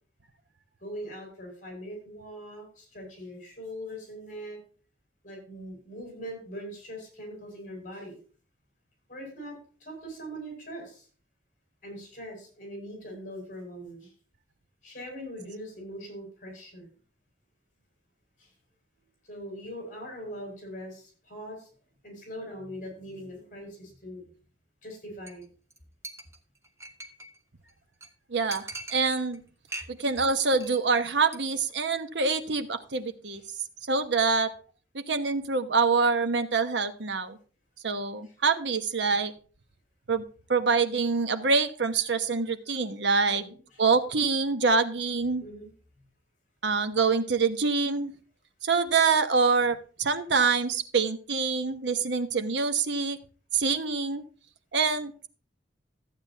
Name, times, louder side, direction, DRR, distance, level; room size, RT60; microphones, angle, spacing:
voice 1, 0.8-4.6 5.2-8.2 9.1-11.1 11.8-14.1 14.8-16.9 18.4-18.5 19.2-21.7 22.0-24.2 24.8-25.5 33.3-33.4 38.2-38.3 43.3-43.8 45.4-45.7, equal, 45° left, 1 dB, 5.9 m, -41 dB
Chink clink, 25.3-25.4 25.7-25.8 26.0-27.4 27.7-27.8 28.0-28.1 28.5-29.4 29.7-30.2 30.5-30.8 31.0-31.4 31.7-31.8, right 2 dB, 15° right, 1.2 m, -41 dB
voice 2, 28.3-29.4 29.9-33.4 33.9-34.5 34.9-37.4 37.8-39.3 40.1-40.2 40.5-43.4 43.8-45.4 46.6-48.1 48.6-53.2 53.5-54.2 54.7-55.3, right 4 dB, 75° right, 9 dB, 1.1 m, -25 dB
14.5 x 8.8 x 2.8 m, 0.39 s
head